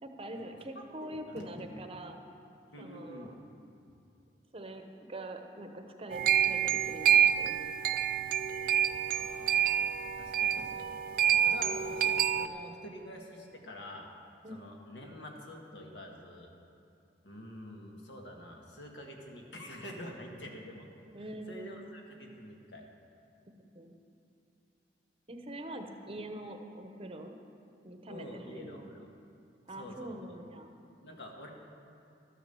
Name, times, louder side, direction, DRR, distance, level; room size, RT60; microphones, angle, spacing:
voice 1, 0.0-2.2 2.8-3.4 4.5-7.7 14.4-14.7 21.1-21.9 23.6-23.9 25.3-27.3 27.8-28.9 29.7-30.7, right 1 dB, 30° right, 5 dB, 0.9 m, -44 dB
voice 2, 0.7-1.7 2.7-3.3 3.9-4.0 9.1-10.9 11.3-14.1 14.5-16.5 17.2-20.9 21.5-22.8 28.1-29.1 29.7-30.4 31.0-31.5, left 1 dB, 70° left, 1 dB, 1.8 m, -47 dB
sound 1, 6.1-12.5, right 9 dB, 50° right, 0.4 m, -28 dB
12.5 x 9.2 x 6.9 m, 2.6 s
head